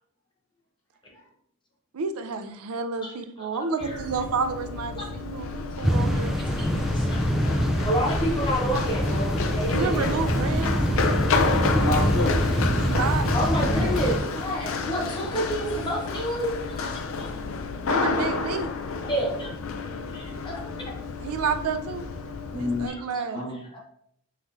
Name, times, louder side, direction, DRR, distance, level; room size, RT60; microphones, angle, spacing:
voice 1, 1.9-6.4 9.7-10.8 12.8-13.3 17.8-18.7 21.2-22.1 22.5-23.4, right 5 dB, 80° right, 9 dB, 0.5 m, -30 dB
Run, 3.8-22.9, left 4 dB, 65° left, 0.4 m, -30 dB
sound 1, 5.8-14.2, equal, ahead, 0.4 m, -25 dB
voice 2, 7.8-10.2 13.3-16.9 17.2-17.3 19.1-19.5 20.1-20.5 22.9-23.2, equal, 20° left, -2 dB, 0.7 m, -29 dB
voice 3, 11.7-12.3 13.7-14.1 22.5-23.8, left 2 dB, 90° left, -9 dB, 1.4 m, -29 dB
5.4 x 3.1 x 2.6 m, 0.69 s
head